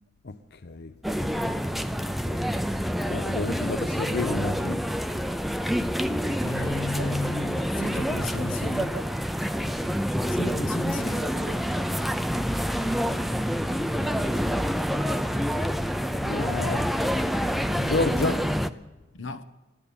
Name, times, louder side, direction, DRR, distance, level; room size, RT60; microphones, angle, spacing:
voice 1, 0.2-0.9 1.2-2.4 3.1-4.8 12.8-13.2 16.2-17.0 17.8-18.5, left 3 dB, 60° left, 0.7 m, -32 dB
sound 1, 1.0-18.7, equal, ahead, 0.5 m, -27 dB
Fixed-wing aircraft airplane, 2.4-17.8, right 2 dB, 70° right, 1.3 m, -49 dB
voice 2, 6.4-8.9 10.3-11.3 19.1-19.5, left 2 dB, 80° left, 1.0 m, -33 dB
14.5 x 11.5 x 8.6 m
head